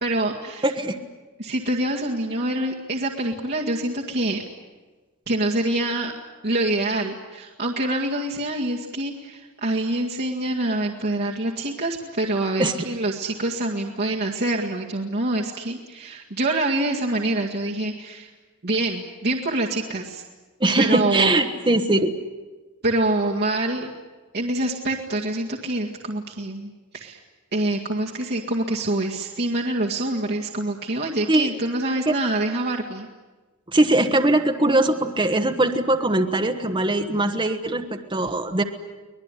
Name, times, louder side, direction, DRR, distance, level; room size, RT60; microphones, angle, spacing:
voice 1, 0.0-0.7 1.4-4.4 5.3-6.1 6.4-18.3 18.6-20.2 20.8-21.4 22.8-23.9 24.3-27.2 27.5-33.1, right 2 dB, 50° right, -2 dB, 2.0 m, -25 dB
voice 2, 0.6-1.0 12.6-12.7 20.6-22.1 31.3-31.5 32.1-32.2 33.7-38.6, right 2 dB, 25° right, 5 dB, 1.2 m, -21 dB
24.5 x 19.5 x 9.9 m, 1.2 s
head